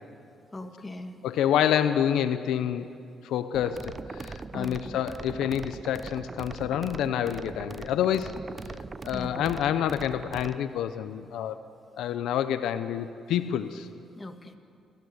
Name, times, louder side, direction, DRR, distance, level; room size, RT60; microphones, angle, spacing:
voice 1, 0.5-1.2 4.5-5.0 9.1-9.6 14.2-14.6, left 2 dB, 20° left, 5 dB, 1.9 m, -40 dB
voice 2, 1.2-2.9 3.2-8.4 9.0-11.6 12.0-13.9, left 10 dB, 85° left, 11 dB, 0.8 m, -28 dB
sound 1, 3.5-10.6, right 4 dB, 30° right, 0.8 m, -40 dB
29.5 x 14.5 x 8.1 m, 2.5 s
cardioid pair, 90°, 0 cm